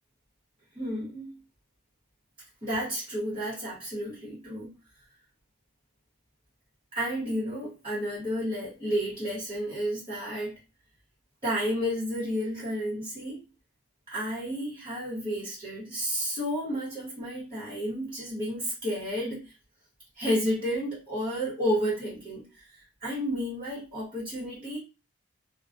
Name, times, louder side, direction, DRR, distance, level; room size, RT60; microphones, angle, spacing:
voice 1, 0.7-1.4 2.6-4.7 6.9-10.5 11.4-13.4 14.1-19.5 20.1-24.8, equal, 25° right, -8 dB, 1.0 m, -31 dB
2.2 x 2.1 x 2.5 m, 0.30 s
head